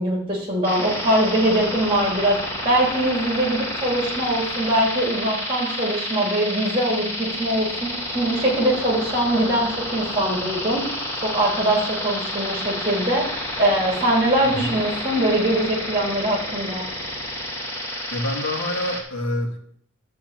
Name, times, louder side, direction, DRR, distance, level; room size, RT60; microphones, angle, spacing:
voice 1, 0.0-2.4 2.6-16.8, right 1 dB, 25° right, -2 dB, 3.1 m, -22 dB
sound 1, 0.6-19.0, left 1 dB, 10° left, 3.3 m, -30 dB
voice 2, 14.4-14.8 18.1-19.6, left 1 dB, 70° left, 0 dB, 2.3 m, -27 dB
13.0 x 4.6 x 7.6 m, 0.65 s
head